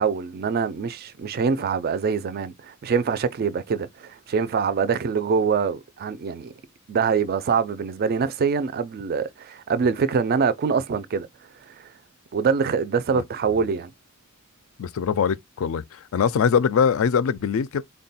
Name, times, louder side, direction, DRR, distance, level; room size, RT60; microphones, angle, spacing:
voice 1, 0.0-6.5 6.9-11.3 11.7-11.9 12.3-13.9, right 6 dB, 45° right, 0.4 m, -24 dB
voice 2, 14.8-17.8, left 6 dB, 70° left, 0.4 m, -22 dB
3.6 x 2.2 x 4.0 m
head